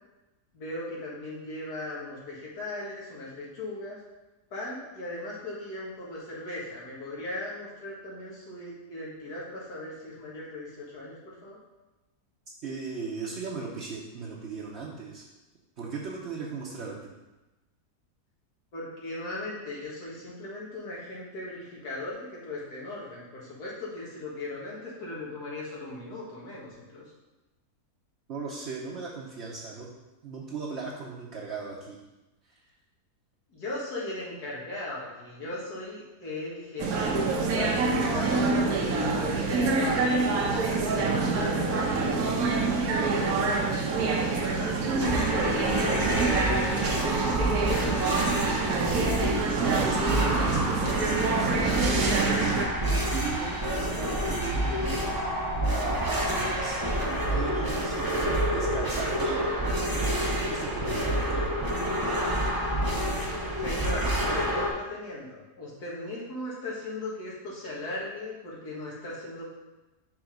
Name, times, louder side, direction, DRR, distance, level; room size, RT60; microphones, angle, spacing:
voice 1, 0.5-4.0 4.5-11.6 18.7-27.0 33.5-42.5 43.1-48.9 63.5-69.5, left 2 dB, 80° left, -6 dB, 2.2 m, -38 dB
voice 2, 12.6-15.2 15.8-17.1 28.3-29.9 30.2-32.0 32.4-32.6 49.4-55.4 55.7-56.8 57.3-59.6 59.8-61.5, right 4 dB, 50° right, -5 dB, 1.0 m, -37 dB
sound 1, 36.8-52.7, right 3 dB, 70° right, 1.2 m, -26 dB
sound 2, 45.0-64.7, right 1 dB, 30° right, 0.4 m, -28 dB
6.1 x 3.5 x 5.1 m, 1.1 s
omnidirectional pair, 1.6 m